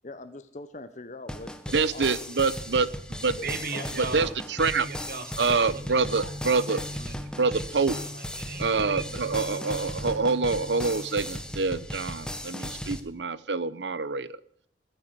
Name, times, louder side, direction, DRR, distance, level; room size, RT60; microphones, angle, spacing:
voice 1, 0.0-2.0 2.8-2.9 3.4-3.5 3.7-3.9, left 2 dB, 45° left, 10 dB, 1.0 m, -42 dB
sound 1, 1.3-13.0, equal, 5° left, 1.3 m, -37 dB
voice 2, 1.7-2.9 3.2-3.4 4.0-4.3 4.6-4.9 5.4-6.8 7.4-7.9 8.6-14.4, right 4 dB, 80° right, 17 dB, 0.9 m, -26 dB
voice 3, 3.2-9.3 9.7-9.8, right 4 dB, 55° right, 8 dB, 2.2 m, -39 dB
sound 2, 5.7-11.2, left 1 dB, 40° right, 1.4 m, -42 dB
20.5 x 9.4 x 6.8 m, 0.70 s
head